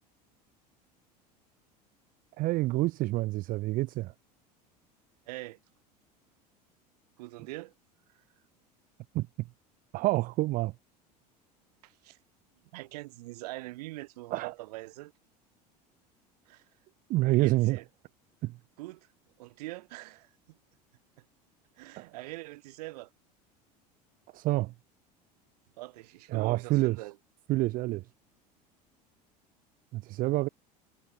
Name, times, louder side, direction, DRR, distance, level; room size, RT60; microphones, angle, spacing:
voice 1, 2.4-4.1 9.1-9.3 9.9-10.7 14.3-14.5 17.1-17.8 18.4-18.6 22.0-22.1 24.3-24.7 26.3-27.0 27.5-28.0 29.9-30.5, right 19 dB, 45° right, 0.4 m, -27 dB
voice 2, 5.3-5.6 7.2-7.7 11.8-12.2 12.7-15.1 16.5-16.6 17.2-17.8 18.8-19.1 19.4-20.6 21.8-23.1 25.8-27.2, right 20 dB, 70° right, 1.3 m, -43 dB
hypercardioid pair, 80°, 21 cm